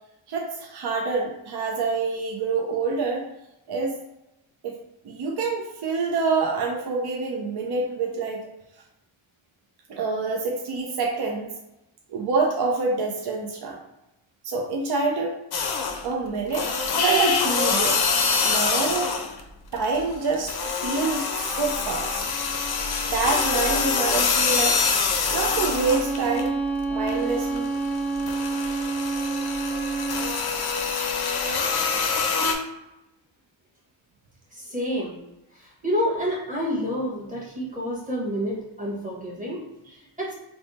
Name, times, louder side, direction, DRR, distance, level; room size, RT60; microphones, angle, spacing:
voice 1, 0.3-3.2 3.7-4.0 4.6-4.7 5.0-8.5 9.9-11.5 12.1-13.8 14.4-15.4 16.0-18.0 18.4-19.1 19.7-22.3 23.1-24.8 25.3-26.5 26.9-27.7, right 4 dB, 55° right, 0 dB, 0.6 m, -26 dB
sound 1, 15.5-16.1 16.5-19.4 19.7-26.5 26.9-32.5, left 5 dB, 50° left, 0.6 m, -25 dB
Bowed string instrument, 25.6-30.4, right 3 dB, 5° left, 0.3 m, -28 dB
voice 2, 34.5-35.1 35.5-40.3, equal, 15° right, -4 dB, 1.2 m, -29 dB
3.4 x 2.1 x 4.0 m, 0.91 s
wide cardioid pair, 130°, 48 cm